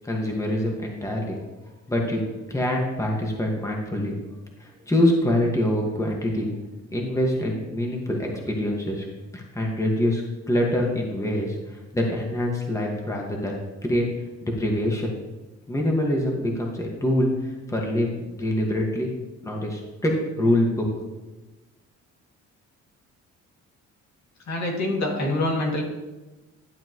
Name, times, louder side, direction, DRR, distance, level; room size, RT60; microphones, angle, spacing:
voice 1, 0.0-1.4 1.9-2.2 2.5-4.2 4.6-6.5 6.9-9.1 9.3-10.2 10.5-14.0 14.4-15.1 15.7-19.1 19.4-20.1 20.4-20.9, left 1 dB, 10° left, -1 dB, 1.8 m, -25 dB
voice 2, 24.5-25.8, left 1 dB, 65° left, -1 dB, 2.5 m, -25 dB
12.0 x 7.5 x 3.1 m, 1.1 s
cardioid pair, 90°, 30 cm